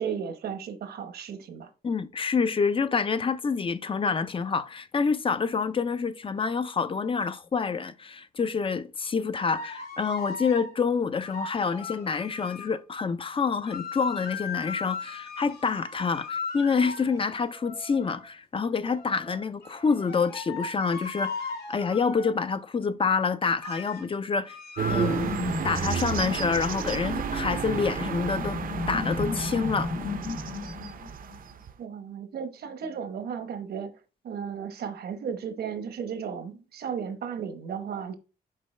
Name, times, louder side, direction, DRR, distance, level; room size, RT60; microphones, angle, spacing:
voice 1, 0.0-1.7 31.8-33.9 34.2-38.2, right 7 dB, 75° right, 1.0 m, -34 dB
voice 2, 1.8-24.6 24.9-25.3 25.6-28.6 28.9-29.9, left 5 dB, 35° left, 0.5 m, -27 dB
sound 1, 9.5-10.7 11.2-12.8 13.6-18.2 18.8-22.4 23.6-24.1 24.5-25.4, left 4 dB, 85° left, 3.1 m, -38 dB
sound 2, 24.8-31.6, left 3 dB, 60° left, 1.1 m, -34 dB
sound 3, 24.8-31.7, right 8 dB, 60° right, 0.6 m, -32 dB
6.7 x 4.5 x 3.2 m
cardioid pair, 110°, 16 cm